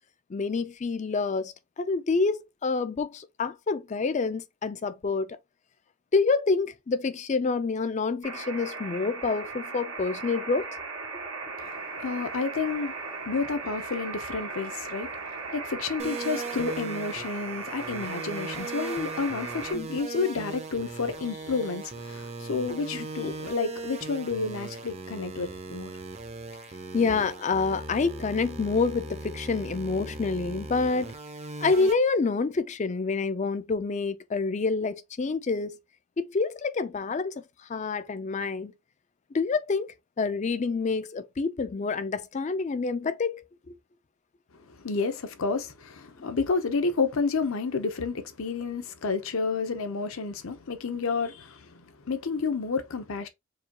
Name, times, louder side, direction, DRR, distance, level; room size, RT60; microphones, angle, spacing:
voice 1, 0.3-5.4 6.1-10.7 19.7-19.9 26.9-31.1 31.6-35.8 36.2-37.3 37.7-38.7 39.3-43.7 46.2-46.3, left 4 dB, 30° left, 0.3 m, -27 dB
sound 1, 8.2-19.7, right 4 dB, 75° right, 1.8 m, -37 dB
voice 2, 11.6-12.9 13.2-25.9 44.7-53.3, left 4 dB, 65° left, 0.7 m, -30 dB
sound 2, 16.0-31.9, right 3 dB, 30° right, 0.5 m, -39 dB
4.7 x 2.3 x 2.9 m
head